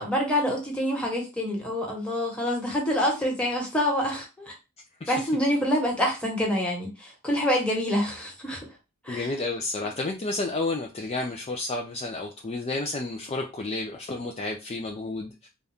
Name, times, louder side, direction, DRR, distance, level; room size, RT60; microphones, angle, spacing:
voice 1, 0.0-4.5 5.1-8.6 9.0-9.3, equal, 5° left, -2 dB, 1.3 m, -26 dB
voice 2, 9.1-15.3, left 2 dB, 30° left, 1 dB, 0.4 m, -31 dB
4.0 x 2.4 x 3.5 m, 0.28 s
head